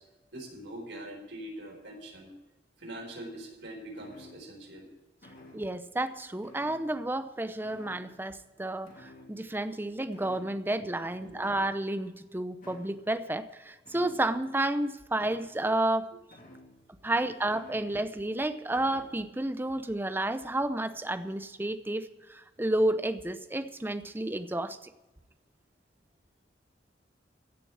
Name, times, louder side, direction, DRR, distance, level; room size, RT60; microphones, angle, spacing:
voice 1, 0.3-2.3 2.8-4.9 11.2-11.4 17.0-17.1, right 1 dB, 75° right, 4.5 m, -43 dB
sound 1, 4.0-4.7 5.2-5.8 6.4-7.3 7.6-8.3 8.9-9.8 10.1-10.9 11.4-12.0 12.6-13.1 13.8-14.5 15.2-15.7 16.3-17.0 17.5-18.2 18.7-19.2, left 1 dB, 45° left, 2.8 m, -52 dB
voice 2, 5.5-8.9 9.3-16.1 17.0-24.8, right 1 dB, 10° right, 0.6 m, -31 dB
16.0 x 6.7 x 8.7 m
head